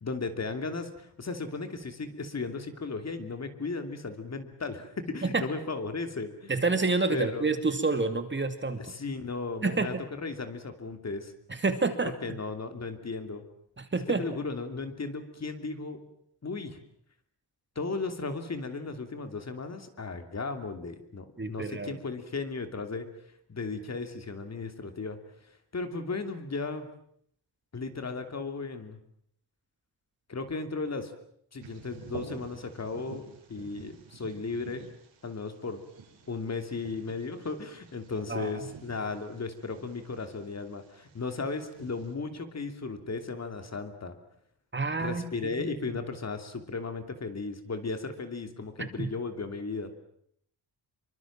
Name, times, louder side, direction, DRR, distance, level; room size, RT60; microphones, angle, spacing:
voice 1, 0.0-6.5 7.1-7.5 8.8-11.3 12.0-13.4 14.2-16.0 16.4-16.8 17.7-23.1 23.5-25.2 25.7-26.9 27.7-29.0 30.3-31.1 31.5-33.2 33.5-34.9 35.2-35.8 36.3-44.2 45.0-49.9, left 4 dB, 35° left, 8 dB, 2.9 m, -35 dB
voice 2, 6.5-8.8 9.6-9.9 11.6-12.1 13.8-14.2 21.4-22.0 38.3-38.6 44.7-45.2 45.6-45.8 49.0-49.1, right 3 dB, 25° right, 8 dB, 2.4 m, -28 dB
Bird vocalization bird call bird song, 31.6-42.1, right 6 dB, 80° right, 6.0 m, -50 dB
26.0 x 24.5 x 7.4 m, 0.70 s
wide cardioid pair, 145°, 44 cm